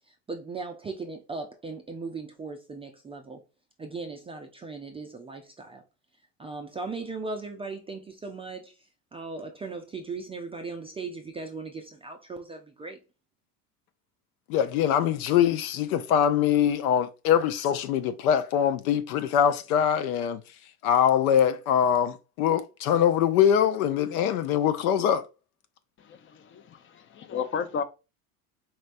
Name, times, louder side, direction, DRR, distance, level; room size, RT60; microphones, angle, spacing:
voice 1, 0.3-3.4 3.8-5.8 6.4-8.8 9.1-13.0, right 3 dB, 15° right, 0.4 m, -38 dB
voice 2, 14.5-20.4 20.8-25.2, left 9 dB, 70° left, 0.7 m, -23 dB
voice 3, 26.0-27.8, left 6 dB, 25° left, 0.6 m, -33 dB
4.4 x 3.2 x 2.5 m
hypercardioid pair, 80°, 46 cm